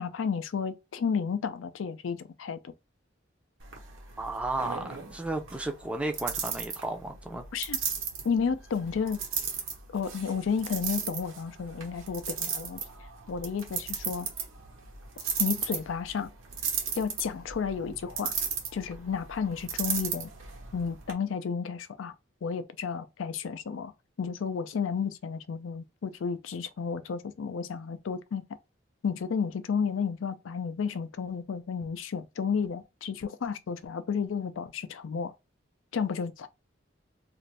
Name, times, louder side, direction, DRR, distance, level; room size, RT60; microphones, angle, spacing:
voice 1, 0.0-2.7 7.5-7.8 8.2-9.2 9.9-12.8 13.3-14.3 15.4-16.3 17.0-18.4 18.7-20.3 20.7-22.1 22.4-23.9 24.2-28.4 29.0-35.3 35.9-36.5, left 6 dB, 80° left, 0.4 m, -32 dB
sound 1, 3.6-21.1, right 6 dB, 85° right, 1.0 m, -36 dB
voice 2, 4.2-7.4, right 2 dB, 5° right, 0.4 m, -33 dB
2.5 x 2.5 x 3.2 m
head